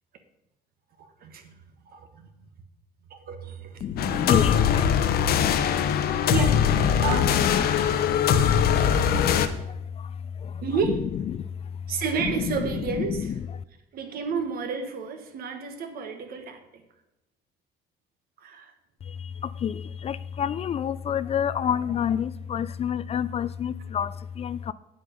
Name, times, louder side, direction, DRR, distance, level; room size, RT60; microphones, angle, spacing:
voice 1, 1.2-1.6 1.9-2.3 3.1-4.2 6.3-6.6 7.0-7.3 10.6-11.0 11.9-13.3 13.9-16.6 18.4-18.7, right 6 dB, 60° right, 7 dB, 1.4 m, -30 dB
voice 2, 3.8-4.9 6.7-6.9 7.2-7.6 9.1-9.3 10.0-10.1 10.4-10.5 11.3-11.4 12.2-13.3 19.1-24.7, left 8 dB, 35° left, 16 dB, 0.3 m, -29 dB
sound 1, 4.0-9.5, left 8 dB, 65° left, 0.8 m, -22 dB
8.6 x 7.8 x 5.1 m, 0.94 s
cardioid pair, 110°, 17 cm